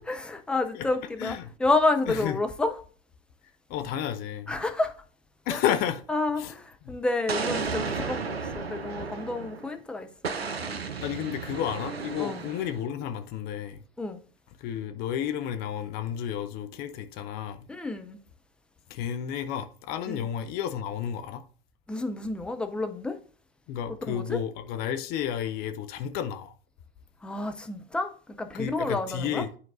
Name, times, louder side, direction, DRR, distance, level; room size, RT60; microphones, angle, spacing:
voice 1, 0.0-2.7 4.5-4.9 5.5-5.6 6.1-8.2 8.5-10.8 12.2-12.4 14.0-14.2 17.7-18.2 20.1-20.2 21.9-23.2 24.1-24.4 27.2-29.4, left 2 dB, 5° left, 0.4 m, -29 dB
voice 2, 1.2-1.5 2.1-2.4 3.7-4.6 5.5-6.0 6.4-6.5 6.8-7.0 11.0-13.8 14.6-17.8 18.9-21.4 23.7-26.5 28.5-29.5, left 9 dB, 30° left, 0.7 m, -32 dB
Explosion, 7.3-9.7 10.2-12.8, right 5 dB, 85° right, 0.8 m, -33 dB
11.0 x 4.5 x 2.5 m
figure-of-eight pair, 105°, 30 cm